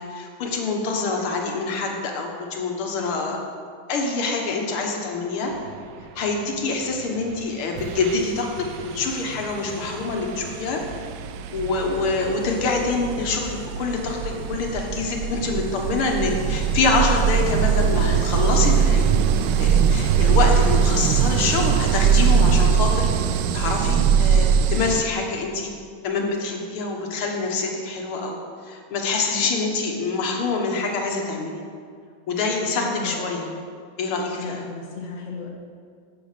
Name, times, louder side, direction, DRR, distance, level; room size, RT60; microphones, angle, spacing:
voice 1, 0.0-3.4 3.9-5.5 6.2-10.8 11.5-25.7 26.0-31.6 32.3-33.4 34.0-34.6, left 3 dB, 90° left, 1 dB, 2.2 m, -26 dB
sound 1, 7.2-7.4 7.8-25.0, right 7 dB, 75° right, 1.0 m, -22 dB
voice 2, 32.8-33.5 34.4-35.5, left 4 dB, 35° left, -1 dB, 1.7 m, -35 dB
10.0 x 8.1 x 6.6 m, 2.1 s
omnidirectional pair, 2.3 m